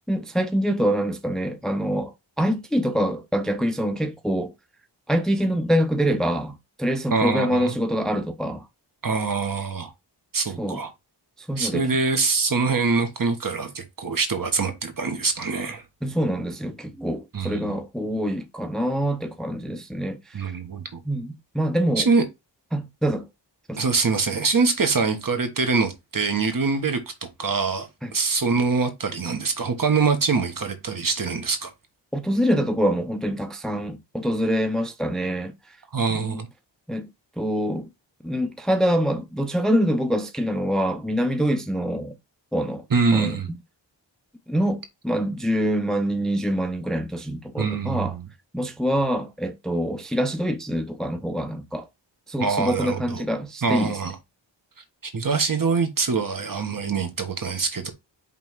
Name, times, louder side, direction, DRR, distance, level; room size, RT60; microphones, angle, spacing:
voice 1, 0.1-4.5 5.1-8.6 10.6-10.8 11.4-11.9 16.0-20.5 21.1-22.1 22.7-23.2 23.7-23.8 28.0-28.1 32.1-35.5 36.2-36.4 36.9-37.1 37.4-37.9 38.2-42.2 42.5-42.8 43.1-43.4 44.5-48.1 48.5-51.9 52.3-54.0, equal, ahead, 0.7 m, -25 dB
voice 2, 7.1-7.8 9.0-9.9 10.3-10.9 11.6-15.8 17.3-17.8 20.3-21.0 22.0-22.2 23.8-31.7 35.9-36.5 42.9-43.5 47.6-48.3 52.4-53.2 53.6-54.1 55.0-57.9, right 4 dB, 45° right, 1.6 m, -24 dB
5.6 x 3.7 x 4.7 m
wide cardioid pair, 95°, 45 cm